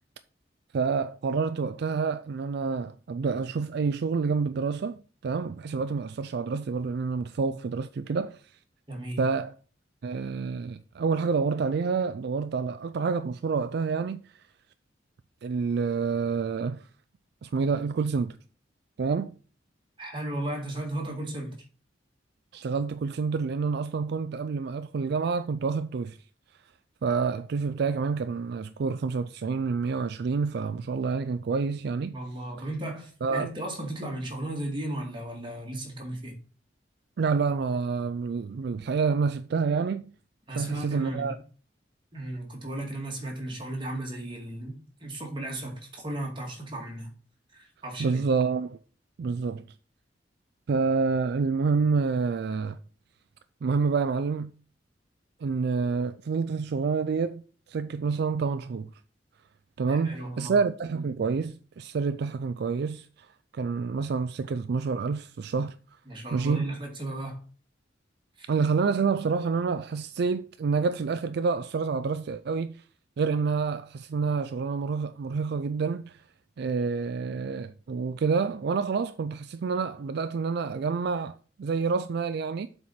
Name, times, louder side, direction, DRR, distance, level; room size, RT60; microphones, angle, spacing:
voice 1, 0.7-8.4 9.2-9.6 10.0-14.3 15.4-16.9 17.4-18.4 19.0-19.3 22.5-26.2 27.0-32.1 33.2-33.5 37.2-40.1 40.5-41.4 48.0-48.8 49.2-49.6 50.7-52.8 53.6-54.5 55.4-57.4 57.7-58.9 59.8-63.3 63.5-65.8 66.3-66.7 68.5-72.8 73.2-76.2 76.6-82.7, right 5 dB, 60° right, 0.4 m, -28 dB
voice 2, 8.9-9.2 20.0-21.5 32.1-36.3 40.5-41.3 42.1-47.1 47.5-48.2 59.9-60.5 66.1-67.4 68.4-68.5, right 1 dB, 30° right, 2.3 m, -35 dB
7.6 x 4.3 x 5.8 m
head